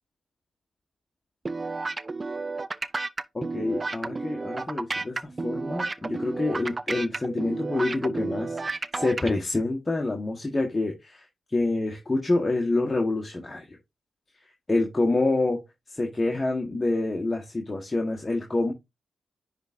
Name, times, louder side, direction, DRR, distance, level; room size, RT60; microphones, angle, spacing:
sound 1, 1.4-9.3, right 3 dB, 35° right, 0.5 m, -32 dB
voice 1, 3.3-13.7 14.7-15.6 15.9-18.7, left 2 dB, 30° left, 1.6 m, -27 dB
10.0 x 3.7 x 2.8 m
hypercardioid pair, 40°, 0 cm